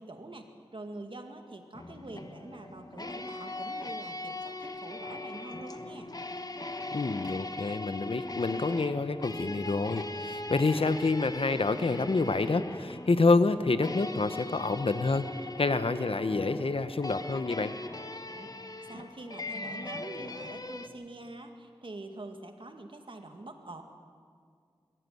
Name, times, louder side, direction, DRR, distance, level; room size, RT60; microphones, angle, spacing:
voice 1, 0.0-6.1 18.3-18.5 18.9-23.8, right 2 dB, 65° right, 5 dB, 2.1 m, -45 dB
sound 1, 1.7-20.9, left 2 dB, 45° left, 1.2 m, -40 dB
voice 2, 6.9-15.3 15.6-17.7, left 3 dB, 80° left, 11 dB, 1.0 m, -28 dB
22.5 x 13.5 x 9.4 m, 2.1 s
wide cardioid pair, 50°, 9 cm